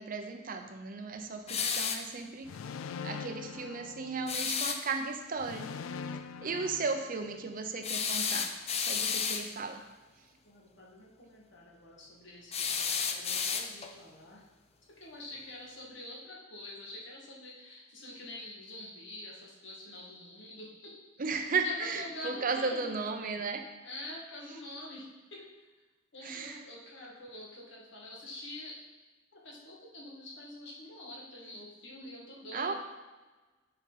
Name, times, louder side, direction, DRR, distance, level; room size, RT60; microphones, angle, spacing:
voice 1, 0.0-2.7 3.0-5.7 6.1-8.5 8.8-9.8 21.2-23.6 26.2-26.6 32.5-32.7, right 4 dB, 45° right, 6 dB, 0.6 m, -35 dB
sound 1, 1.5-2.1 4.3-4.8 7.8-9.5 12.5-14.0, left 6 dB, 30° left, 0.5 m, -32 dB
sound 2, 2.4-4.6 5.4-7.6, left 5 dB, 90° left, 0.3 m, -43 dB
voice 2, 10.4-14.4 15.0-21.3 21.6-23.5 23.8-25.7 26.1-28.9 29.3-32.7, left 1 dB, 65° left, -3 dB, 1.9 m, -46 dB
9.1 x 5.1 x 4.1 m, 1.2 s
head